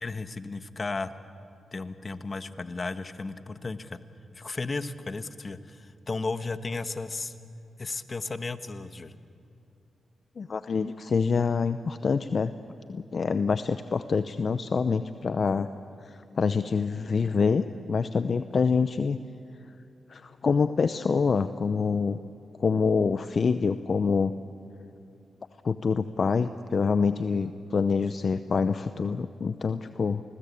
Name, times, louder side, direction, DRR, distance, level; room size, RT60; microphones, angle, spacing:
voice 1, 0.0-1.1 1.7-4.0 4.3-7.3 7.8-9.1, left 3 dB, 40° left, 11 dB, 1.3 m, -34 dB
voice 2, 10.4-12.5 12.9-15.7 16.0-19.2 20.1-22.2 22.6-24.3 25.6-30.2, left 5 dB, 55° left, 11 dB, 0.7 m, -26 dB
29.5 x 20.0 x 8.5 m, 2.6 s
cardioid pair, 55°, 0 cm